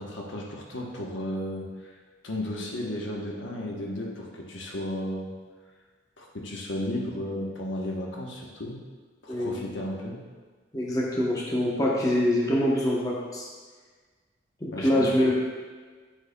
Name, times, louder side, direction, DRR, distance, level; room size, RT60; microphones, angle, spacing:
voice 1, 0.0-1.9 2.2-5.3 6.2-8.8 9.2-10.2 14.7-15.1, left 1 dB, 80° left, -1 dB, 1.0 m, -34 dB
voice 2, 9.3-9.6 10.7-13.5 14.6-15.3, left 1 dB, 20° left, -3 dB, 0.8 m, -25 dB
7.9 x 6.6 x 2.2 m, 1.5 s
head